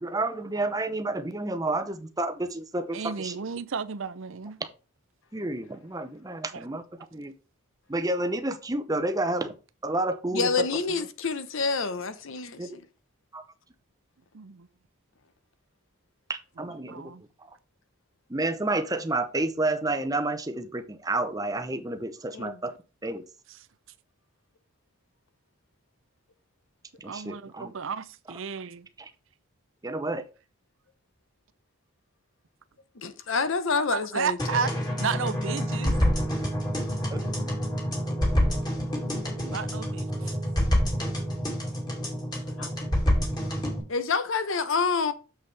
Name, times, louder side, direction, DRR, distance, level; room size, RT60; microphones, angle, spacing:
voice 1, 0.0-3.4 5.3-6.8 7.1-7.3 7.9-9.5 9.8-11.1 12.6-12.8 13.3-13.4 16.3-17.0 18.3-22.7 23.0-23.2 27.0-27.7 29.8-30.2, right 2 dB, 15° right, 0.7 m, -30 dB
voice 2, 2.9-4.6 6.5-6.7 14.3-14.7 16.6-17.2 27.0-28.9 33.9-36.0 39.4-40.4, right 6 dB, 60° right, 0.6 m, -33 dB
voice 3, 10.3-12.7 22.3-22.6 33.0-34.4 42.6-42.7 43.9-45.1, left 4 dB, 60° left, 0.8 m, -27 dB
sound 1, 34.4-43.8, equal, 20° left, 2.3 m, -27 dB
7.1 x 6.5 x 3.4 m
head